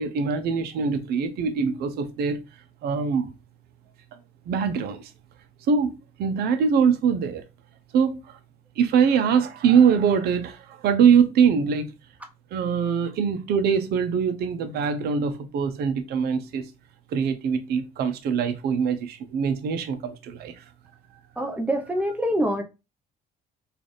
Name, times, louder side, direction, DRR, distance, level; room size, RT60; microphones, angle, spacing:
voice 1, 0.0-2.4 2.8-3.3 4.5-5.1 5.7-7.4 7.9-8.4 8.8-11.9 12.5-16.6 17.1-20.6, right 6 dB, 70° right, 0.7 m, -23 dB
voice 2, 21.4-22.6, equal, 10° right, 0.8 m, -25 dB
3.3 x 2.5 x 3.9 m
cardioid pair, 110°, 17 cm